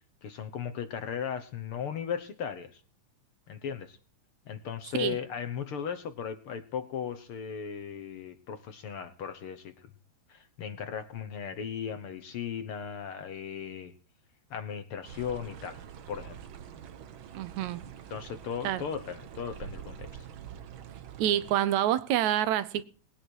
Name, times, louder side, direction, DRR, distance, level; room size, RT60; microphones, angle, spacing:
voice 1, 0.2-2.8 3.5-4.0 4.5-9.9 10.3-13.9 14.5-15.8 16.1-16.4 18.1-20.3, left 7 dB, 60° left, 1.6 m, -37 dB
sound 1, 15.0-21.6, right 8 dB, 60° right, 1.4 m, -45 dB
voice 2, 17.3-17.8 18.6-18.8 21.2-22.8, right 11 dB, 80° right, 2.1 m, -27 dB
20.0 x 9.7 x 4.6 m
omnidirectional pair, 3.3 m